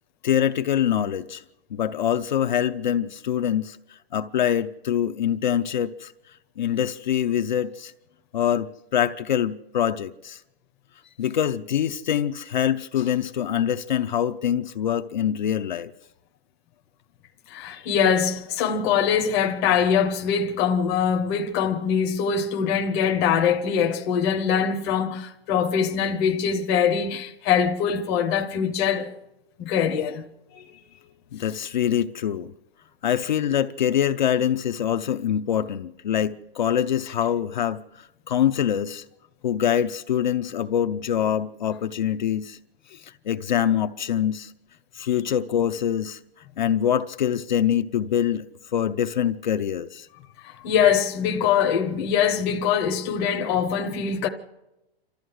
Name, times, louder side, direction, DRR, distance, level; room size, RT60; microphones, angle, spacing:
voice 1, 0.2-1.4 1.7-6.1 6.6-7.9 8.3-10.4 11.2-15.9 31.3-32.5 33.0-39.0 39.4-42.6 42.9-44.5 44.9-46.2 46.6-48.4 48.7-50.1, left 9 dB, 50° left, 0.6 m, -24 dB
voice 2, 17.5-29.1 29.6-30.2 30.5-30.8 50.4-54.3, left 7 dB, 15° left, 0.7 m, -23 dB
27.0 x 13.0 x 7.8 m
hypercardioid pair, 175°, 30 cm